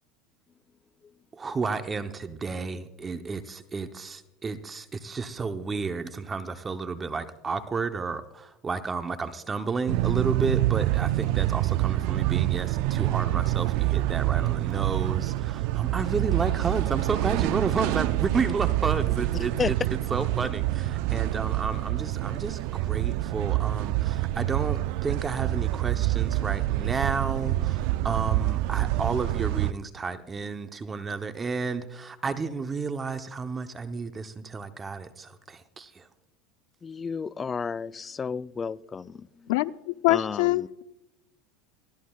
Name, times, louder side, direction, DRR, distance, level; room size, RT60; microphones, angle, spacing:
voice 1, 1.3-19.5 20.1-36.1, right 4 dB, 20° right, 0.8 m, -32 dB
sound 1, 9.9-29.7, right 16 dB, 65° right, 0.3 m, -26 dB
voice 2, 36.8-39.5 40.1-40.7, left 5 dB, 25° left, 0.4 m, -32 dB
voice 3, 39.5-40.8, left 19 dB, 75° left, 0.5 m, -25 dB
22.0 x 15.5 x 2.4 m
supercardioid pair, 115°, 0 cm